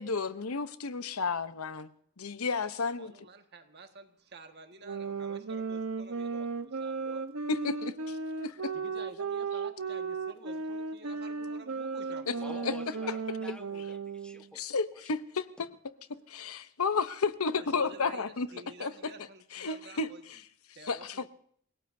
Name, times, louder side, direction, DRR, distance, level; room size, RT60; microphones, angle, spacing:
voice 1, 0.0-1.9 2.2-3.1 7.5-8.7 12.3-12.4 12.6-12.7 13.1-13.2 14.5-15.7 16.3-18.5 18.8-18.9 19.5-20.4 20.9-21.3, left 4 dB, 85° left, 0.9 m, -32 dB
voice 2, 3.0-7.2 8.7-12.7 17.6-20.4 20.7-21.3, right 3 dB, 50° right, 1.7 m, -50 dB
sound 1, 4.8-14.5, right 4 dB, 85° right, 1.1 m, -35 dB
voice 3, 12.4-14.8 15.6-15.7, left 1 dB, 5° left, 1.3 m, -49 dB
29.0 x 18.0 x 2.7 m
head